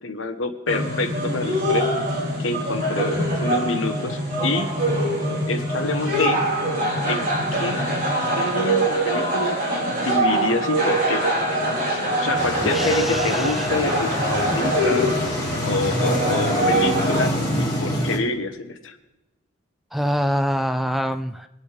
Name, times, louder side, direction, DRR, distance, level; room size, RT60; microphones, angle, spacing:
voice 1, 0.0-1.9 2.4-4.7 5.5-6.4 7.1-7.2 7.5-7.8 8.4-11.3 11.9-15.1 15.6-18.9, left 3 dB, 80° left, 7 dB, 1.1 m, -27 dB
sound 1, 0.7-17.3, right 1 dB, 40° right, 3.8 m, -23 dB
sound 2, 12.3-18.2, equal, 20° left, 2.2 m, -26 dB
voice 2, 12.6-13.7 19.9-21.5, equal, ahead, 9 dB, 0.3 m, -25 dB
24.5 x 8.5 x 3.4 m, 1.0 s
head